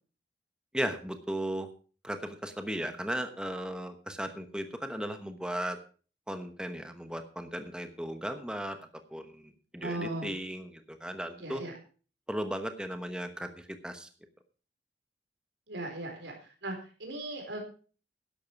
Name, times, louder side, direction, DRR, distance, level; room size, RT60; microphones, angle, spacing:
voice 1, 0.7-1.7 2.0-5.8 6.3-11.6 12.3-14.1, right 1 dB, 5° right, 7 dB, 1.1 m, -36 dB
voice 2, 9.8-10.3 11.4-11.7 15.7-17.6, right 1 dB, 85° right, 2 dB, 4.3 m, -38 dB
12.5 x 11.0 x 4.6 m, 0.38 s
head